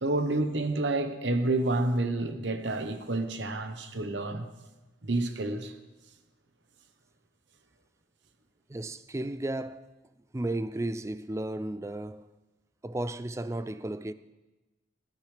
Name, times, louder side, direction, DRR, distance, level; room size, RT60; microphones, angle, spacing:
voice 1, 0.0-4.5 5.0-5.7, right 2 dB, 70° right, 1.0 m, -29 dB
voice 2, 8.7-9.8 10.3-12.3 12.8-14.1, right 1 dB, 15° right, 0.3 m, -34 dB
19.0 x 12.0 x 3.4 m
head